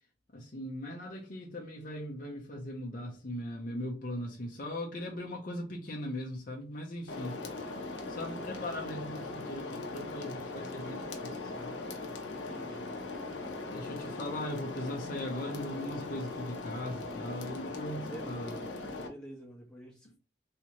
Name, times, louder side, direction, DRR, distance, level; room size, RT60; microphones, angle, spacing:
voice 1, 0.3-7.4 8.1-11.8 13.7-18.6, left 1 dB, 45° left, 0.7 m, -39 dB
sound 1, 7.1-19.1, left 3 dB, 85° left, 0.7 m, -40 dB
voice 2, 12.3-12.9 18.1-18.3 19.0-20.2, right 1 dB, 5° left, 1.0 m, -47 dB
3.3 x 2.9 x 2.9 m
head